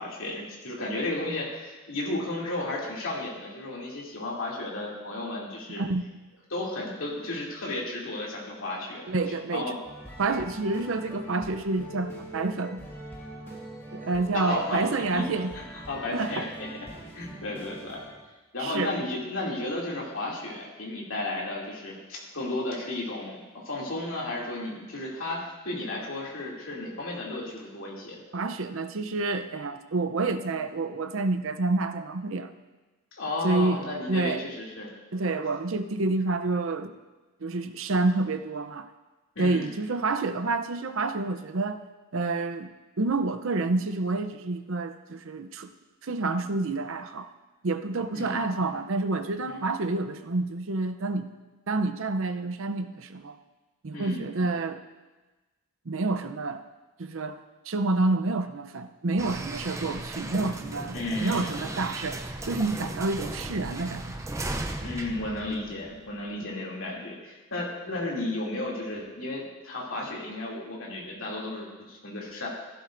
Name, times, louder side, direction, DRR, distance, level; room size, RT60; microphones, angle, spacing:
voice 1, 0.0-5.8 6.5-9.8 14.3-14.8 15.1-15.3 15.7-16.9 17.1-18.0 18.5-23.4 23.6-28.2 33.1-34.9 39.4-39.7 48.1-48.5 49.5-49.7 53.9-54.2 60.9-61.5 64.8-72.5, left 2 dB, 65° left, -4 dB, 2.7 m, -33 dB
voice 2, 9.1-9.8 10.2-12.9 13.9-15.5 16.1-16.4 18.6-18.9 28.3-32.5 33.4-33.8 34.1-34.5 35.1-36.9 37.4-38.9 39.4-41.8 42.1-42.7 43.0-45.7 46.0-47.3 47.6-51.3 51.7-53.4 53.8-54.8 55.9-56.6 57.0-64.1, right 3 dB, 65° right, 9 dB, 0.6 m, -28 dB
sound 1, 9.8-18.2, right 1 dB, 10° left, 1.8 m, -42 dB
sound 2, 59.2-66.1, right 2 dB, 15° right, 0.5 m, -36 dB
15.0 x 12.0 x 2.6 m, 1.2 s
head